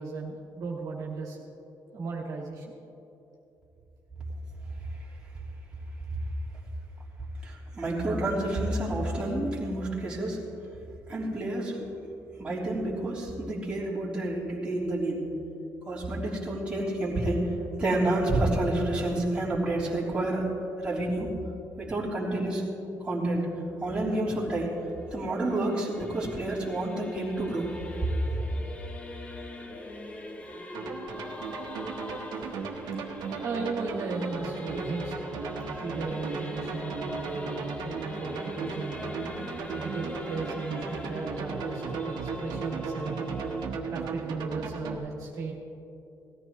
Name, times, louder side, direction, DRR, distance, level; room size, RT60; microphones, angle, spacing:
voice 1, 0.0-1.4 1.9-2.7 33.4-35.2 35.8-39.0 39.8-43.2 43.9-45.5, right 3 dB, 60° right, -3 dB, 2.0 m, -35 dB
voice 2, 7.4-10.4 11.1-11.9 12.4-15.3 15.8-17.5 17.8-20.5 20.8-21.4 21.8-22.6 23.0-23.5 23.8-24.7 25.1-27.7, right 1 dB, 15° right, -7 dB, 3.4 m, -29 dB
Singing / Musical instrument, 24.3-43.7, left 1 dB, 20° left, 0.9 m, -42 dB
sound 1, 30.7-45.0, right 5 dB, 80° right, 1.3 m, -36 dB
18.5 x 14.0 x 3.2 m, 2.8 s
cardioid pair, 140°, 7 cm